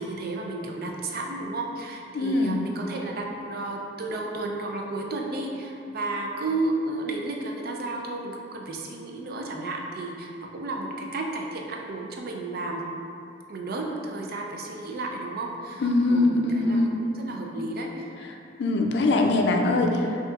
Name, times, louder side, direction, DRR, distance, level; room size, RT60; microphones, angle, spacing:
voice 1, 0.0-12.8 13.5-18.1, right 2 dB, 55° right, 1 dB, 0.4 m, -32 dB
voice 2, 2.1-2.6 15.8-17.0 18.6-20.0, left 2 dB, 65° left, 3 dB, 0.4 m, -22 dB
5.7 x 2.8 x 2.4 m, 2.7 s
head